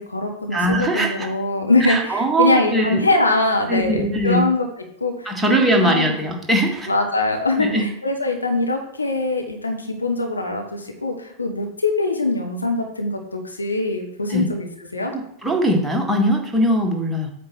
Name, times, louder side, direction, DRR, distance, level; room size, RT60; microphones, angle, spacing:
voice 1, 0.0-4.7 5.0-6.2 6.9-14.7 14.9-15.1, left 2 dB, 80° left, 2 dB, 1.4 m, -22 dB
voice 2, 0.5-1.3 1.9-3.0 3.7-4.5 5.2-6.9 7.6-7.9 14.3-14.5 15.1-17.3, right 1 dB, 5° right, 0 dB, 1.7 m, -20 dB
8.5 x 4.1 x 6.1 m, 0.74 s
figure-of-eight pair, 90°, 0 cm